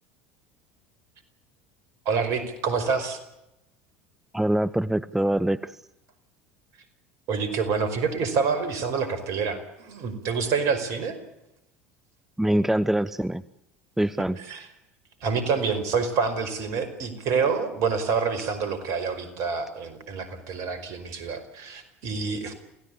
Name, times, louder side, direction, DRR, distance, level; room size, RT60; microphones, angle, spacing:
voice 1, 2.0-3.2 7.3-11.2 14.4-14.7 15.2-22.5, right 5 dB, 55° right, 11 dB, 5.1 m, -27 dB
voice 2, 4.3-5.7 12.4-13.4 14.0-14.4, right 1 dB, 5° right, 14 dB, 0.8 m, -24 dB
28.5 x 17.0 x 8.7 m, 0.88 s
figure-of-eight pair, 70°, 6 cm